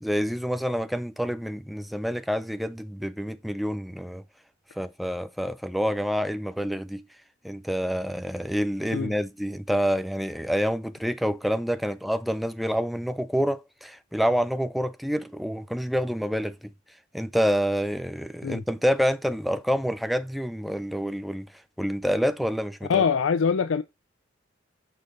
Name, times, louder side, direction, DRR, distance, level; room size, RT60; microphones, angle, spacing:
voice 1, 0.0-4.2 4.8-7.1 7.4-16.7 17.1-21.5 21.8-23.0, equal, ahead, 0.3 m, -27 dB
voice 2, 22.9-23.8, left 6 dB, 70° left, 0.4 m, -23 dB
5.6 x 5.3 x 4.0 m
head